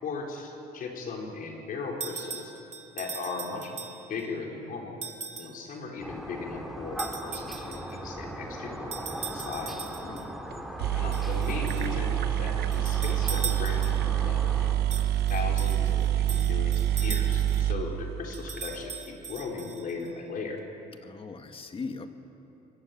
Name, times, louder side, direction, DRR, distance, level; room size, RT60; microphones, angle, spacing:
voice 1, 0.0-2.5 2.9-3.7 4.1-5.0 5.3-9.8 10.9-20.6, left 4 dB, 55° left, 0 dB, 4.8 m, -37 dB
sound 1, 2.0-4.2 5.0-5.6 7.0-8.0 8.9-10.3 11.1-11.9 12.7-14.2 14.9-17.7 18.3-20.1, right 6 dB, 40° right, 2.1 m, -40 dB
sound 2, 6.0-14.7, equal, ahead, 2.7 m, -38 dB
sound 3, 10.5-10.6 10.8-18.6, right 11 dB, 70° right, 1.0 m, -27 dB
voice 2, 21.0-22.1, left 4 dB, 30° left, 7 dB, 1.9 m, -39 dB
24.0 x 20.5 x 8.7 m, 3.0 s
cardioid pair, 110°, 17 cm